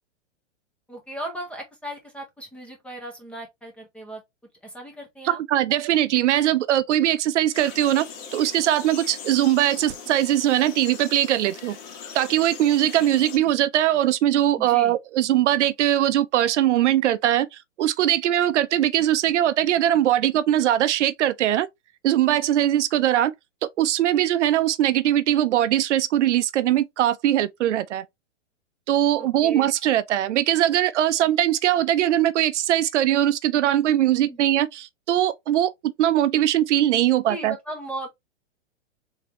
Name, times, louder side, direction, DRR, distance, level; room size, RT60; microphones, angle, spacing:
voice 1, 0.9-4.2 4.6-5.4 14.6-14.9 29.2-29.7 34.3-34.6 37.3-38.1, right 1 dB, 5° left, 0.6 m, -37 dB
voice 2, 5.2-8.0 8.3-11.8 12.1-17.5 17.8-21.7 22.0-23.3 23.8-28.0 28.9-35.7 36.0-37.5, right 12 dB, 70° right, 0.5 m, -21 dB
sound 1, 7.5-13.4, left 6 dB, 40° left, 1.3 m, -40 dB
3.6 x 3.4 x 2.9 m
hypercardioid pair, 145°, 37 cm